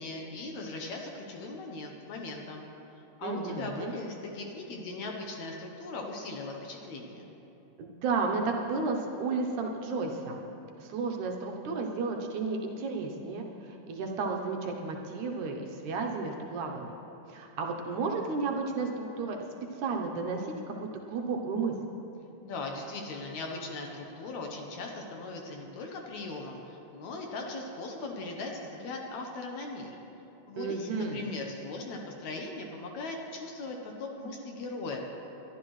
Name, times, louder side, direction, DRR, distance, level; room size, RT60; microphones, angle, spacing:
voice 1, 0.0-2.7 3.2-7.3 22.4-30.0 30.5-35.0, left 3 dB, 65° left, 1 dB, 2.0 m, -39 dB
voice 2, 3.2-3.9 7.8-10.4 10.8-16.9 17.3-19.4 19.8-21.7 30.6-31.2, right 4 dB, 70° right, 1 dB, 2.1 m, -33 dB
21.5 x 12.5 x 3.1 m, 2.9 s
omnidirectional pair, 3.9 m